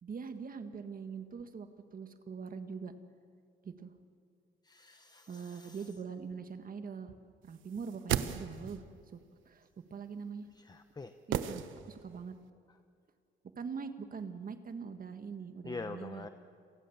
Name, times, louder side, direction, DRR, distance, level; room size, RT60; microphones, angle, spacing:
voice 1, 0.0-2.9 3.6-3.9 5.3-7.1 7.4-8.8 9.1-9.2 9.4-10.5 11.3-12.3 13.5-16.3, right 5 dB, 45° right, 8 dB, 1.7 m, -43 dB
voice 2, 4.6-5.8 10.6-11.1 15.6-16.3, left 3 dB, 20° left, 9 dB, 1.0 m, -45 dB
sound 1, 7.7-8.9 11.3-12.2 12.5-12.6, right 10 dB, 80° right, 1.1 m, -35 dB
29.5 x 23.0 x 7.2 m, 2.3 s
cardioid pair, 90°, 20 cm